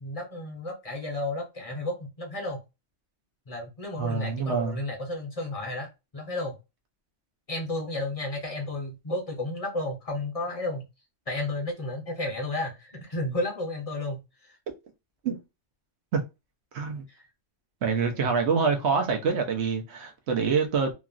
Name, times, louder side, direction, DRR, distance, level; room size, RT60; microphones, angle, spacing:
voice 1, 0.0-2.6 3.5-5.9 6.1-6.6 7.5-10.9 11.3-14.2 14.5-14.6 17.1-17.3 18.1-18.4, left 2 dB, 35° left, 0.7 m, -32 dB
voice 2, 4.0-4.8 15.2-15.4 16.1-16.2 16.7-17.0 17.8-20.9, right 5 dB, 65° right, 1.0 m, -26 dB
2.9 x 2.3 x 2.4 m
omnidirectional pair, 1.3 m